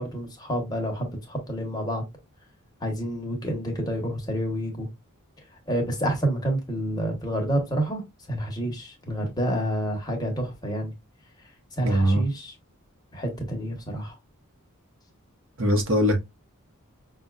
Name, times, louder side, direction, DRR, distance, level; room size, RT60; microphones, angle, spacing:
voice 1, 0.0-2.0 2.8-4.9 5.7-8.0 8.3-10.9 11.7-12.5 13.1-14.2, right 1 dB, 20° left, 1.1 m, -28 dB
voice 2, 11.8-12.2 15.6-16.2, equal, 60° right, 1.0 m, -21 dB
5.5 x 2.4 x 2.3 m
head